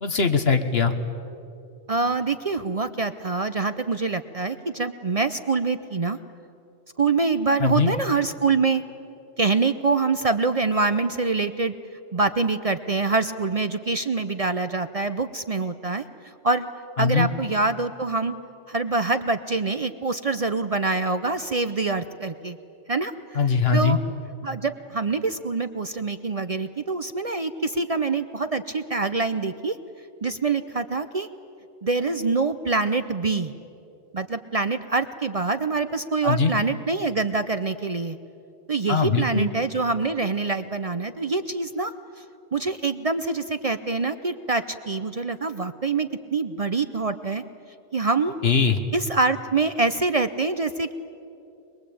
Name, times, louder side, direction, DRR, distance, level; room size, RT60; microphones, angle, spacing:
voice 1, 0.0-0.9 7.6-7.9 17.0-17.3 23.3-24.0 36.2-36.5 38.9-39.5 48.4-48.8, left 5 dB, 60° left, 8 dB, 1.5 m, -21 dB
voice 2, 1.9-6.2 7.0-8.8 9.4-11.7 12.1-16.0 16.4-16.7 17.0-18.3 18.7-22.6 22.9-23.4 23.7-24.0 24.4-29.8 30.2-31.3 31.8-33.5 34.1-38.2 38.7-41.9 42.2-42.3 42.5-47.4 47.9-48.3 48.9-50.9, right 3 dB, 40° right, 10 dB, 0.6 m, -25 dB
23.0 x 22.0 x 8.6 m, 2.7 s
omnidirectional pair, 1.2 m